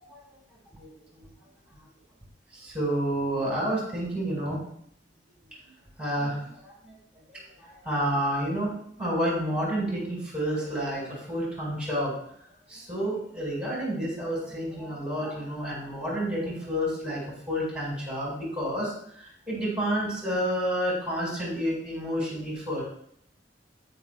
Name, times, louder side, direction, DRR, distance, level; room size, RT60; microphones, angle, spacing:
voice 1, 2.6-4.6 6.0-6.7 7.3-8.7 9.0-12.1 12.7-17.2 17.5-18.9 19.5-22.8, equal, 5° right, -4 dB, 4.5 m, -29 dB
18.5 x 6.3 x 2.3 m, 0.66 s
head